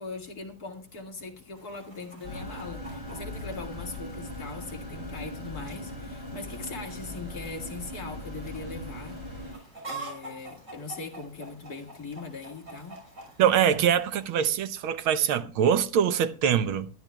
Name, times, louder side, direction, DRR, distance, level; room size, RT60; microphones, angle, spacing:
voice 1, 0.0-13.0, left 3 dB, 45° left, 2.3 m, -40 dB
Chicken rooster, 1.5-14.5, right 2 dB, 35° right, 6.2 m, -47 dB
sound 1, 2.2-9.5, left 1 dB, 10° right, 5.8 m, -39 dB
voice 2, 13.4-16.9, right 9 dB, 80° right, 1.6 m, -23 dB
21.0 x 12.5 x 2.3 m
omnidirectional pair, 2.3 m